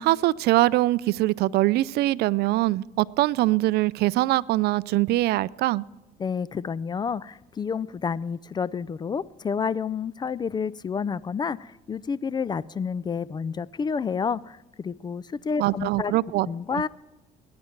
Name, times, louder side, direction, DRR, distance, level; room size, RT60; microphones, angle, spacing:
voice 1, 0.0-5.8 15.6-16.5, right 17 dB, 75° right, 0.4 m, -23 dB
voice 2, 6.2-16.1 16.5-16.9, left 6 dB, 25° left, 0.3 m, -29 dB
20.5 x 10.5 x 4.5 m
cardioid pair, 110°, 17 cm